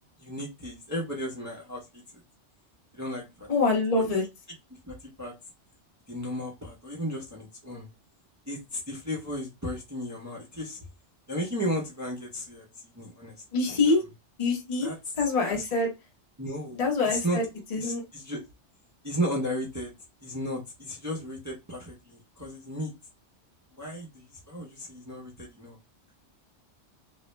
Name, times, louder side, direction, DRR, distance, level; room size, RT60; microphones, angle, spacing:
voice 1, 0.2-1.9 2.1-2.2 2.9-3.5 4.8-5.3 6.1-7.9 8.5-10.9 11.3-13.3 13.7-14.0 14.8-15.0 15.4-15.6 16.4-17.4 17.8-18.4 19.0-19.9 20.2-22.9 23.8-25.8, equal, 25° right, 0.4 m, -34 dB
voice 2, 3.5-4.2 13.5-14.0 14.4-14.9 15.2-15.9 16.7-17.4 17.7-18.0, left 3 dB, 40° left, 0.6 m, -25 dB
2.4 x 2.0 x 3.0 m
omnidirectional pair, 1.2 m